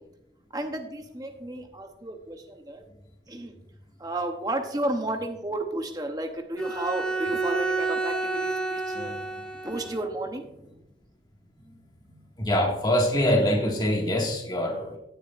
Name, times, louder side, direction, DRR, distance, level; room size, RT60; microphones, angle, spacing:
voice 1, 0.5-2.8 3.3-3.5 4.0-9.1 9.6-10.4, right 1 dB, 20° right, 5 dB, 0.8 m, -32 dB
Bowed string instrument, 6.6-10.1, right 3 dB, 5° left, 1.0 m, -30 dB
voice 2, 12.4-15.0, equal, 25° left, -1 dB, 1.8 m, -24 dB
17.5 x 6.5 x 2.5 m, 0.84 s
head